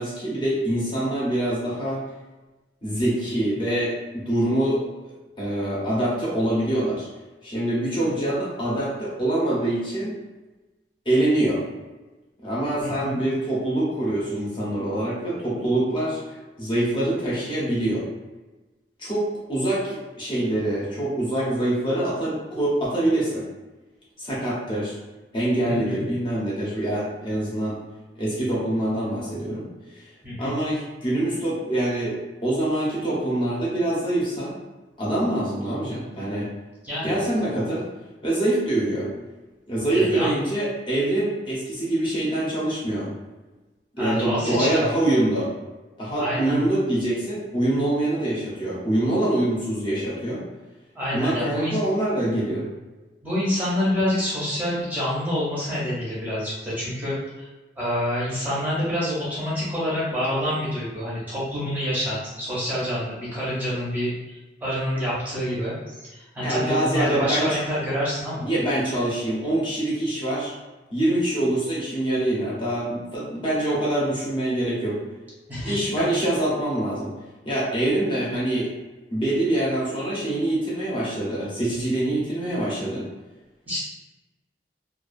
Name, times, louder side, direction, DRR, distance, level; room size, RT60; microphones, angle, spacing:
voice 1, 0.0-2.0 2.8-4.8 5.4-7.1 7.4-10.1 11.1-11.6 12.4-18.0 19.0-23.5 24.2-25.0 25.3-27.8 28.2-30.0 30.4-34.6 35.0-36.5 37.0-37.8 38.2-39.1 39.7-43.1 44.0-45.5 46.0-50.4 51.1-52.6 66.4-67.6 68.4-70.5 70.9-75.0 75.6-77.1 77.4-78.7 79.1-83.1, right 1 dB, 30° left, -7 dB, 0.7 m, -25 dB
voice 2, 12.8-13.2 25.6-26.0 30.2-30.5 36.8-37.2 39.9-40.3 44.0-45.0 46.2-46.6 51.0-51.8 53.2-57.5 57.8-68.5 75.5-75.7 83.7-83.8, equal, 10° right, -9 dB, 0.6 m, -27 dB
2.3 x 2.3 x 2.5 m, 1.1 s
head